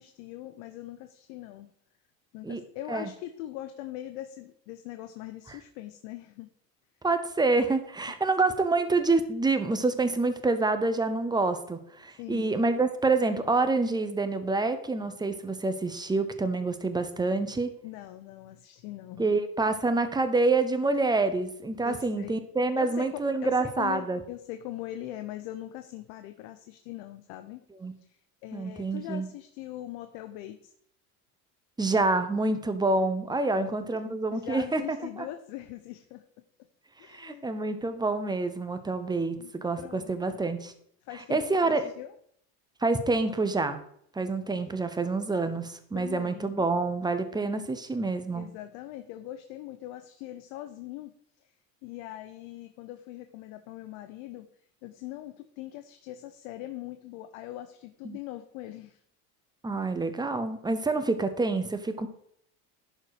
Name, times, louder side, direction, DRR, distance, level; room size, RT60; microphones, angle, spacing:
voice 1, 0.0-1.7 2.3-6.5 12.2-12.5 17.8-19.3 21.8-22.3 22.8-27.6 28.0-30.7 33.5-34.0 34.3-36.2 37.0-37.5 39.4-39.5 39.8-40.4 41.0-42.1 45.9-46.6 48.3-51.5 51.8-54.5 54.8-59.0 59.7-59.8, left 14 dB, 75° left, 8 dB, 0.8 m, -41 dB
voice 2, 7.0-17.7 19.2-24.2 27.8-27.9 28.5-29.3 31.8-35.3 37.1-40.7 41.3-41.9 42.8-43.8 44.1-48.5 58.0-58.2 59.6-62.1, right 3 dB, 10° right, 10 dB, 0.7 m, -27 dB
11.0 x 4.4 x 4.8 m, 0.68 s
supercardioid pair, 120°, 45 cm